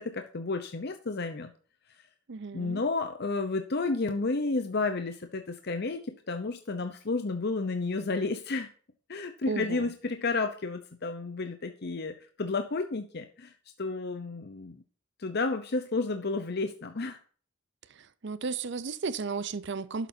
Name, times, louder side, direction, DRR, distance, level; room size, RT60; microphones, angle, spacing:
voice 1, 0.0-1.5 2.5-8.7 9.1-13.5 13.8-14.8 15.2-17.2, left 3 dB, 50° left, 0.8 m, -31 dB
voice 2, 2.3-2.8 9.5-9.9 17.9-20.1, right 4 dB, 55° right, 0.6 m, -34 dB
11.5 x 8.3 x 2.8 m
head